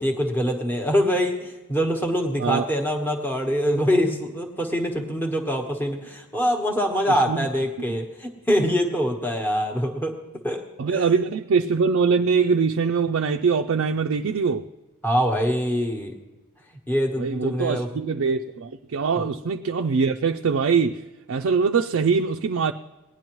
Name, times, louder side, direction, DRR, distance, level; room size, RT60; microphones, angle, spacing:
voice 1, 0.0-10.1 10.4-11.0 15.0-16.1 16.9-17.9 19.1-19.3, equal, 10° left, 1.1 m, -24 dB
voice 2, 7.1-7.5 7.9-8.0 10.8-14.7 17.2-22.7, right 5 dB, 60° right, 0.4 m, -23 dB
19.0 x 10.5 x 3.0 m
head